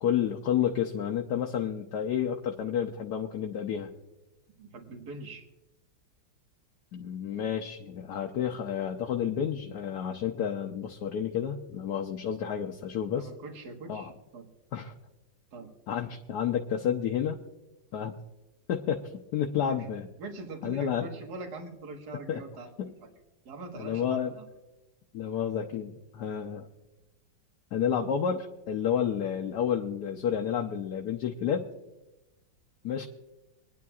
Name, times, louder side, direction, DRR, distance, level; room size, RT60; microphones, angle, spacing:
voice 1, 0.0-3.9 6.9-13.3 13.9-14.1 14.7-14.9 15.9-17.4 17.9-18.1 18.7-20.1 20.6-21.1 22.3-22.4 22.8-22.9 23.8-24.3 25.1-26.7 27.7-31.7 32.8-33.1, left 8 dB, 65° left, 2 dB, 1.2 m, -30 dB
voice 2, 4.6-5.4 13.1-14.5 15.5-15.7 19.7-19.9 20.2-22.7 23.0-23.1 23.5-24.5, right 3 dB, 55° right, 3 dB, 2.0 m, -43 dB
26.0 x 10.0 x 2.4 m, 1.0 s
omnidirectional pair, 2.1 m